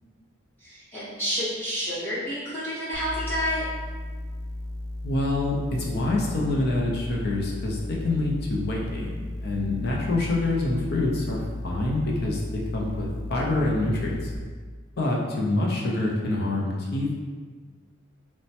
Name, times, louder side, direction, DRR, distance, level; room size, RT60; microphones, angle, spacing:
voice 1, 0.6-3.6, equal, 10° left, -12 dB, 0.8 m, -29 dB
sound 1, 2.9-14.4, left 1 dB, 70° right, 0.4 m, -35 dB
voice 2, 5.0-14.3 15.0-17.2, left 2 dB, 50° left, -2 dB, 0.5 m, -26 dB
3.1 x 2.1 x 2.8 m, 1.5 s
head